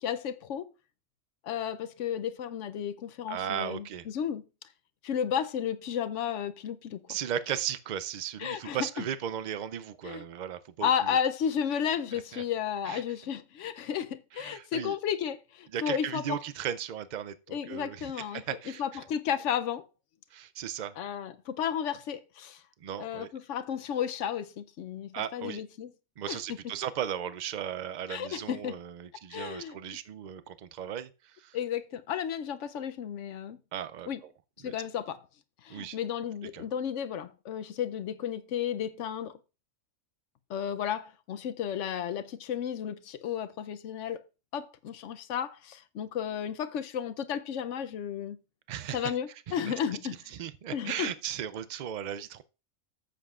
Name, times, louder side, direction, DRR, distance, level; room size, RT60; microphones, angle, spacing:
voice 1, 0.0-0.7 1.4-4.4 5.0-7.1 8.4-9.0 10.0-10.2 10.8-16.4 17.5-19.9 21.0-22.6 23.0-25.9 26.2-26.6 28.1-28.8 29.3-29.8 31.5-33.6 34.1-34.2 34.6-35.2 35.6-39.4 40.5-44.2 44.5-48.4 48.9-50.2 50.7-51.1, left 8 dB, 70° left, 0.9 m, -33 dB
voice 2, 3.3-4.1 7.1-11.2 12.1-12.4 12.9-13.0 14.3-15.0 15.7-19.0 20.3-20.9 22.8-23.3 25.1-25.6 26.2-31.6 33.7-34.1 34.6-34.7 35.7-36.0 36.5-36.6 48.7-49.1 49.5-49.7 50.3-52.4, right 9 dB, 65° right, 0.4 m, -36 dB
14.5 x 7.7 x 2.4 m
omnidirectional pair, 1.3 m